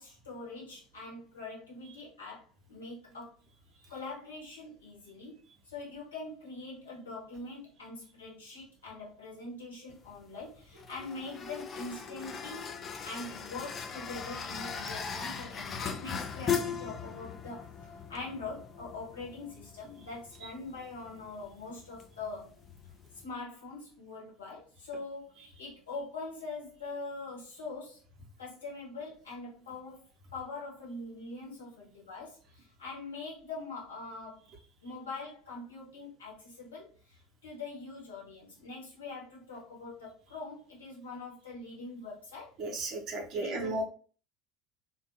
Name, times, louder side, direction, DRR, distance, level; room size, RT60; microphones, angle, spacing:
voice 1, 0.0-3.3 3.9-12.7 13.0-22.5 23.1-28.0 28.4-30.0 30.3-34.5 34.8-42.5 43.3-43.8, left 3 dB, 80° left, -4 dB, 1.0 m, -43 dB
sound 1, 9.9-23.2, left 6 dB, 35° left, 0.3 m, -39 dB
voice 2, 42.6-43.8, right 2 dB, 50° right, 3 dB, 0.6 m, -34 dB
2.5 x 2.1 x 2.6 m, 0.40 s
figure-of-eight pair, 70°, 0 cm